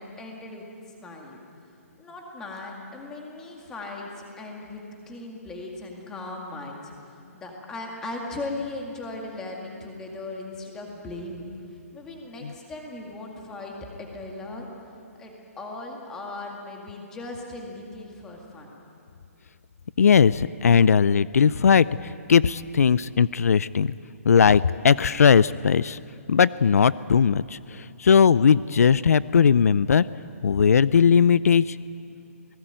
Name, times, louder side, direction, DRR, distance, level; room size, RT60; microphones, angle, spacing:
voice 1, 0.0-1.4 2.0-14.7 15.2-18.8, left 2 dB, 5° left, 0 dB, 2.0 m, -38 dB
voice 2, 20.0-23.9 24.2-26.0 26.3-30.1 30.4-31.8, left 6 dB, 75° left, 18 dB, 0.5 m, -19 dB
28.5 x 19.5 x 9.0 m, 2.6 s
hypercardioid pair, 180°, 8 cm